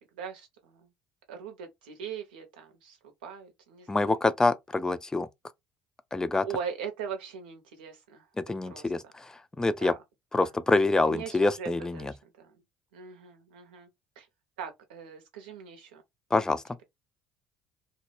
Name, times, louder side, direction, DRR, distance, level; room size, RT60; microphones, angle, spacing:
voice 1, 0.2-0.8 1.3-3.0 3.2-4.1 6.4-8.2 8.7-8.9 9.6-10.0 10.4-10.5 11.1-12.1 12.4-12.5 12.9-13.9 14.2-14.3 14.6-16.0, right 7 dB, 75° right, 0.6 m, -40 dB
voice 2, 3.9-5.3 6.1-6.5 8.4-9.9 10.3-12.1 16.3-16.6, left 2 dB, 10° left, 0.3 m, -26 dB
2.1 x 2.0 x 3.0 m
figure-of-eight pair, 60°, 5 cm